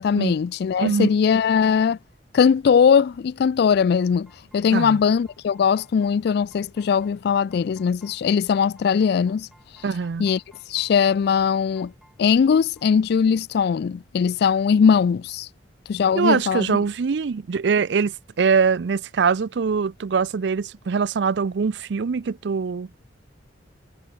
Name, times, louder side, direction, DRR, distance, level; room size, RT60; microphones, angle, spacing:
voice 1, 0.0-2.0 2.3-9.5 10.2-10.4 10.7-11.9 12.2-15.5 15.9-16.8, left 6 dB, 60° left, 0.3 m, -20 dB
voice 2, 0.8-1.1 4.7-5.0 9.8-10.3 16.1-22.9, right 5 dB, 65° right, 0.5 m, -23 dB
sound 1, 4.0-12.9, equal, ahead, 5.3 m, -58 dB
head